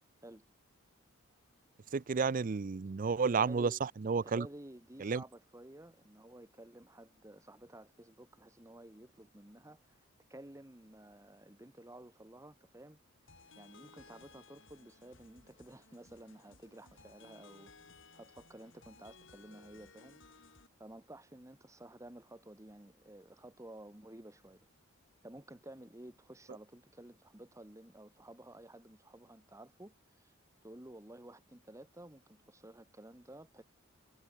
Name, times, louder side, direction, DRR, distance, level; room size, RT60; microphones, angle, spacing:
voice 1, 1.9-3.7 4.0-4.5 5.0-5.2, right 5 dB, 40° right, 0.4 m, -31 dB
voice 2, 3.4-3.8 4.2-10.0 10.3-13.0 13.6-20.2 20.8-24.7 25.2-30.3 30.6-33.6, right 1 dB, 15° right, 1.3 m, -53 dB
sound 1, 13.3-20.7, left 4 dB, 60° left, 4.9 m, -60 dB
head